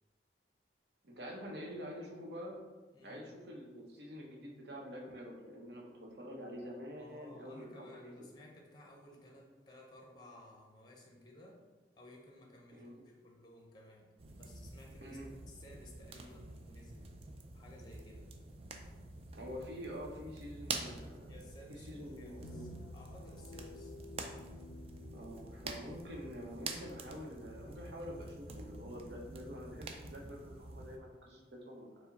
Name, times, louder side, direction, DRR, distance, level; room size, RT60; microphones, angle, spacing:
voice 1, 1.0-2.6 3.0-8.0 12.7-13.0 15.0-15.3 19.3-21.3 21.7-22.8 25.1-32.0, equal, 70° right, -1 dB, 0.8 m, -47 dB
voice 2, 7.0-11.6 12.0-14.1 14.3-15.2 15.5-17.2 17.5-18.3 21.3-24.0, left 1 dB, 25° left, -1 dB, 0.6 m, -56 dB
sound 1, 14.2-31.0, right 3 dB, 35° right, 0.3 m, -47 dB
sound 2, 22.4-31.2, left 2 dB, 75° left, 0.4 m, -55 dB
4.6 x 2.1 x 4.0 m, 1.3 s
head